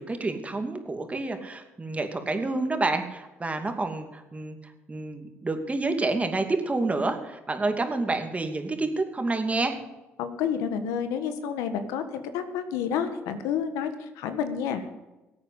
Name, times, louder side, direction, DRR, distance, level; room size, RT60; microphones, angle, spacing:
voice 1, 0.0-4.6 4.9-9.8, right 3 dB, 25° right, 6 dB, 2.6 m, -28 dB
voice 2, 10.2-14.8, left 7 dB, 85° left, 9 dB, 1.6 m, -29 dB
16.0 x 8.8 x 8.1 m, 1.1 s
supercardioid pair, 70°, 5 cm